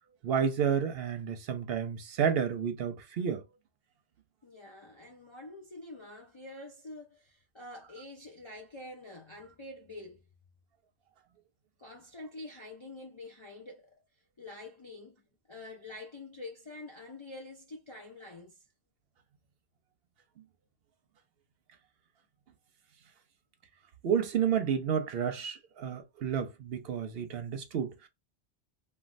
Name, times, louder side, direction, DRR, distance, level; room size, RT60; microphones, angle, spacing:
voice 1, 0.2-3.4 24.0-28.1, right 7 dB, 65° right, 0.7 m, -30 dB
voice 2, 4.4-10.2 11.8-14.0 14.4-15.2 15.5-18.6, left 2 dB, 45° left, 0.4 m, -46 dB
3.1 x 2.2 x 2.5 m
omnidirectional pair, 1.2 m